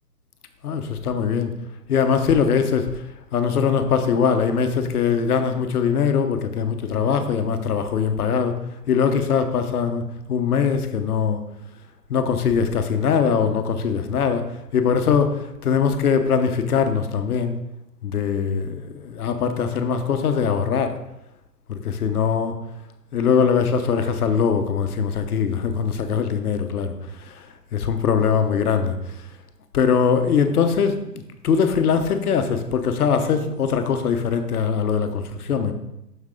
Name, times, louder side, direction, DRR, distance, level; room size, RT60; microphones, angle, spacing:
voice 1, 0.6-1.5 1.9-3.0 3.3-8.6 8.9-11.4 12.1-14.5 14.7-17.6 18.0-20.9 21.7-22.6 23.1-26.9 27.2-27.5 27.7-29.0 29.7-31.0 31.4-35.7, left 6 dB, 65° left, 8 dB, 1.1 m, -21 dB
7.3 x 6.4 x 3.8 m, 0.89 s
hypercardioid pair, 140°, 49 cm